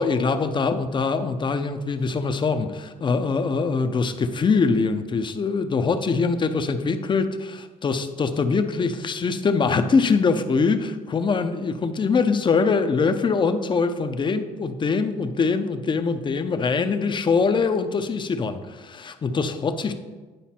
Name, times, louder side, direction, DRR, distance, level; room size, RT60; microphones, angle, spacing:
voice 1, 0.0-20.0, left 4 dB, 30° left, 9 dB, 0.6 m, -23 dB
9.2 x 5.0 x 4.3 m, 1.3 s
cardioid pair, 110°, 17 cm